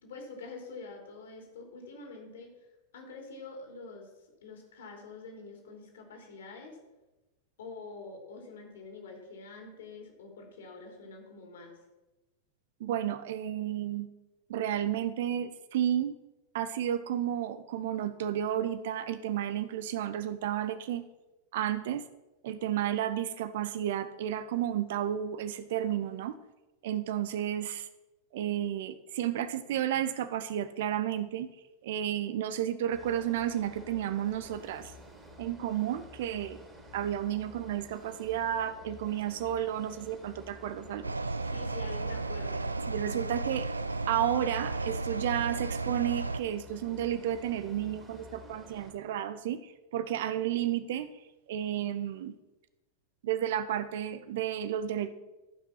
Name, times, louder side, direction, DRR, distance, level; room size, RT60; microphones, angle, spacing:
voice 1, 0.0-2.5 2.9-4.1 4.4-6.8 7.6-11.7 41.4-42.6, left 3 dB, 60° left, 2 dB, 3.3 m, -46 dB
voice 2, 12.8-14.1 14.5-16.1 16.5-21.0 21.5-22.0 22.4-26.3 26.8-27.9 28.3-31.5 31.8-34.9 35.4-36.6 36.9-41.1 42.9-43.7 44.1-51.1 51.5-52.3 53.2-55.1, right 11 dB, 55° right, 14 dB, 0.8 m, -32 dB
sound 1, 32.9-48.9, equal, 15° right, 2.8 m, -51 dB
sound 2, 41.0-46.4, right 3 dB, 80° right, 0.4 m, -34 dB
14.0 x 5.9 x 5.8 m, 1.1 s
figure-of-eight pair, 90°, 0 cm